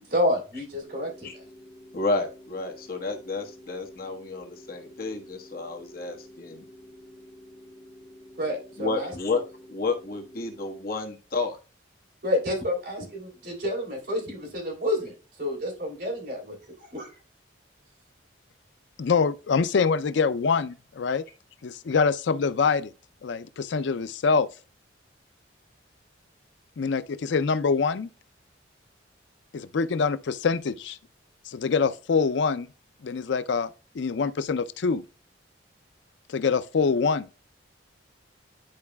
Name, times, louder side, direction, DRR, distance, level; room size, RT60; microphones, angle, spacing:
voice 1, 0.1-1.4 8.4-9.4 12.2-15.1 15.4-16.5 16.8-17.1, left 1 dB, 55° right, 4.0 m, -29 dB
sound 1, 0.8-10.8, left 1 dB, 25° left, 2.5 m, -49 dB
voice 2, 1.9-6.6 8.8-9.4 9.7-11.6, left 3 dB, 50° left, 1.3 m, -31 dB
voice 3, 19.0-21.2 21.6-22.9 23.2-24.5 26.8-28.1 29.5-31.0 31.5-32.7 33.0-33.7 33.9-35.0 36.3-37.3, left 5 dB, 70° left, 0.4 m, -25 dB
10.5 x 4.7 x 2.3 m
head